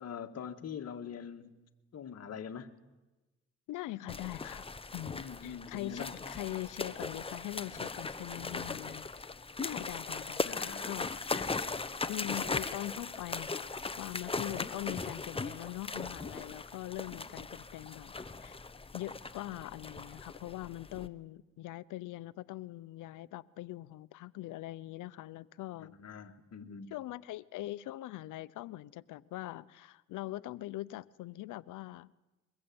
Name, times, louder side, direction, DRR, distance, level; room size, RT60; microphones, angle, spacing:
voice 1, 0.0-1.6 1.9-2.8 5.1-6.2 10.4-11.0 11.3-11.6 17.1-17.2 25.8-26.9, left 7 dB, 55° left, 2.0 m, -44 dB
voice 2, 3.7-4.7 4.9-9.1 9.6-11.6 12.1-13.6 14.0-18.1 18.4-18.6 18.9-25.9 26.9-32.1, left 16 dB, 85° left, 0.8 m, -42 dB
sound 1, 4.1-21.1, left 4 dB, 20° left, 1.0 m, -39 dB
23.0 x 21.0 x 8.8 m
cardioid pair, 90°, 30 cm